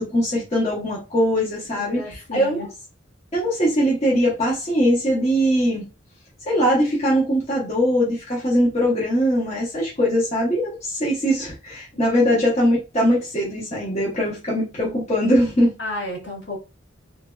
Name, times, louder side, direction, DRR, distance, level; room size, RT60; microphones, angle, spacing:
voice 1, 0.0-2.0 2.3-2.7 3.3-5.9 6.5-15.7, equal, 35° left, 0.7 m, -21 dB
voice 2, 1.7-2.7 12.0-12.2 14.1-14.3 15.8-16.6, left 2 dB, 60° left, 1.1 m, -33 dB
3.2 x 2.2 x 2.3 m
head